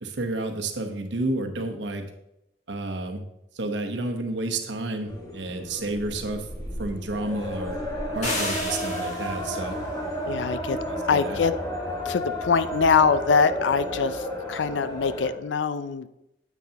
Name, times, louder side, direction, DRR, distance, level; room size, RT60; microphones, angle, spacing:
voice 1, 0.0-2.0 2.7-3.2 3.5-6.4 6.8-7.8 8.1-9.8 10.9-11.4, right 2 dB, 75° right, 5 dB, 1.1 m, -30 dB
sound 1, 5.1-15.3, equal, 20° left, 1.9 m, -32 dB
sound 2, 8.2-9.5, left 1 dB, 40° left, 2.6 m, -31 dB
voice 2, 10.3-10.8 11.1-11.5 12.1-16.1, left 5 dB, 80° left, 13 dB, 0.5 m, -23 dB
9.2 x 8.2 x 2.9 m, 0.87 s
head